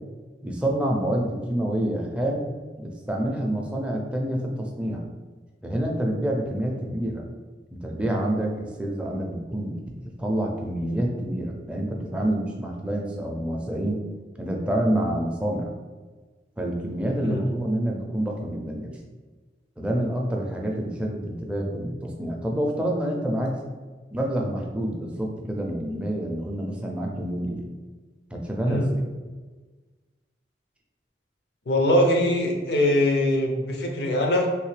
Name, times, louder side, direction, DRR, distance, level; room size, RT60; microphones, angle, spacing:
voice 1, 0.4-2.5 2.8-5.1 5.6-7.3 7.7-14.0 14.4-15.7 16.6-19.0 19.8-23.6 24.1-27.7 28.3-29.0, right 1 dB, 5° right, -1 dB, 0.4 m, -27 dB
voice 2, 31.7-34.5, left 1 dB, 65° left, 1 dB, 0.6 m, -22 dB
3.2 x 2.6 x 3.2 m, 1.3 s
head